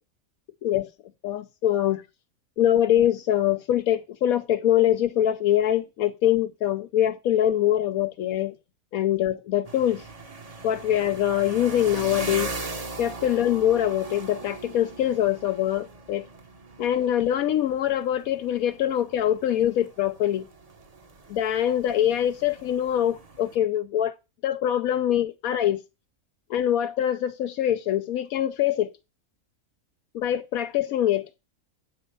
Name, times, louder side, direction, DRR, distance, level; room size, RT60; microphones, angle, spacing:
voice 1, 1.2-2.0 2.6-8.6 8.9-10.0 10.6-12.5 13.0-16.3 16.8-20.5 21.3-24.1 24.4-25.8 26.5-28.9 30.1-31.3, left 11 dB, 80° left, 1.1 m, -24 dB
sound 1, 9.6-23.6, right 3 dB, 30° right, 0.9 m, -39 dB
8.4 x 4.2 x 5.4 m
omnidirectional pair, 1.5 m